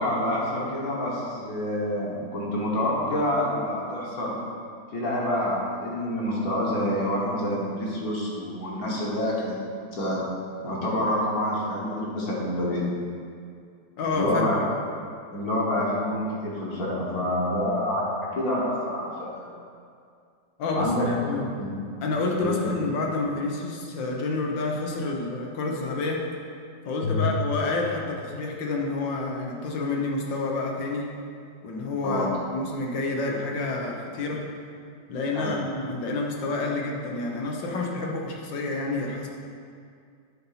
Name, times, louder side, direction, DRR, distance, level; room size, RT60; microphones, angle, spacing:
voice 1, 0.0-4.3 4.9-9.6 9.9-10.2 10.6-12.8 14.1-14.6 15.3-19.5 20.7-21.1 21.6-21.8 22.4-22.5 27.0-27.3 32.0-32.3 35.3-35.6, left 1 dB, 55° left, -5 dB, 1.7 m, -27 dB
voice 2, 14.0-14.6 20.6-21.4 22.0-26.2 26.8-31.1 31.6-34.4 35.1-39.3, left 3 dB, 85° left, 0 dB, 1.7 m, -29 dB
8.5 x 4.1 x 5.7 m, 2.3 s
omnidirectional pair, 2.0 m